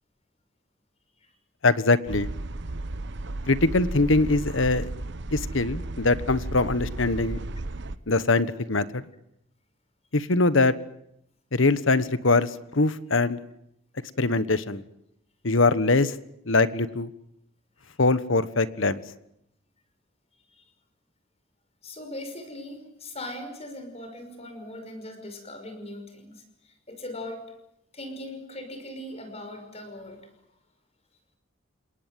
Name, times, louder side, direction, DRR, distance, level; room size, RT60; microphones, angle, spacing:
voice 1, 1.6-2.3 3.5-4.9 5.3-7.4 8.1-9.0 10.1-10.7 11.5-13.4 14.2-14.8 15.4-16.1 16.5-17.1 18.0-19.0, left 3 dB, 70° left, 15 dB, 1.3 m, -22 dB
sound 1, 2.1-8.0, right 2 dB, 60° right, 1.0 m, -34 dB
voice 2, 21.8-27.5 27.9-30.4, left 1 dB, 30° left, 8 dB, 5.6 m, -40 dB
29.5 x 19.0 x 9.3 m, 0.78 s
head